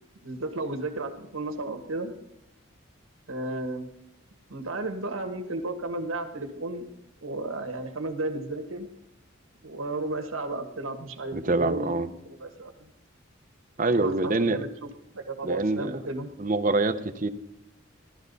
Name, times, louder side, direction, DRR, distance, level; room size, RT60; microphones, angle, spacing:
voice 1, 0.2-2.1 3.3-3.9 4.5-6.9 7.2-8.9 9.6-12.9 13.9-14.9 15.1-16.3, right 2 dB, 75° right, 4 dB, 1.4 m, -33 dB
voice 2, 11.3-12.1 13.8-14.6 15.4-16.0 16.4-17.3, right 2 dB, 40° right, 8 dB, 0.7 m, -25 dB
16.5 x 12.0 x 4.0 m, 0.88 s
head